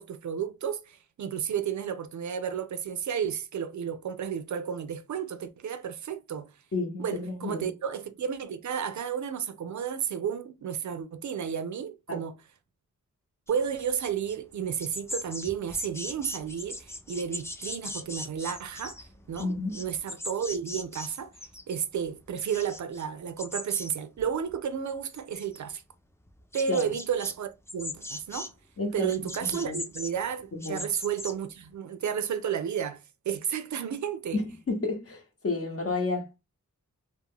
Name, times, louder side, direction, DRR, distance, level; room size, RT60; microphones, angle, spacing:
voice 1, 0.0-6.5 7.0-12.3 13.5-19.0 19.3-21.3 21.7-25.8 26.5-28.5 28.9-34.4, right 8 dB, 65° right, 0.4 m, -32 dB
voice 2, 6.7-7.7 12.1-12.2 19.4-19.8 26.7-26.9 28.8-29.1 29.4-29.8 30.5-30.8 34.3-36.4, left 3 dB, 45° left, 0.9 m, -31 dB
sound 1, 13.5-14.4 14.6-21.8 22.0-23.0 23.4-23.9 24.2-24.8 25.1-25.7 26.3-27.3 27.7-28.5 29.1-31.3, left 1 dB, 10° left, 0.4 m, -40 dB
2.2 x 2.1 x 3.5 m
cardioid pair, 55°, 32 cm